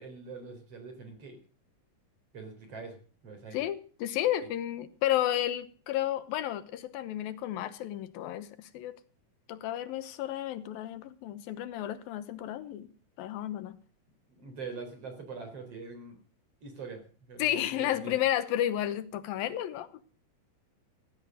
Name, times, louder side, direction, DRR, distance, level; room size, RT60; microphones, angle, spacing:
voice 1, 0.0-1.4 2.3-3.6 14.3-16.2 16.6-18.1, right 4 dB, 45° right, 4.7 m, -43 dB
voice 2, 3.5-9.0 9.5-12.9 13.2-13.8 17.4-20.0, left 12 dB, 90° left, 2.9 m, -32 dB
16.0 x 11.0 x 6.6 m
omnidirectional pair, 4.0 m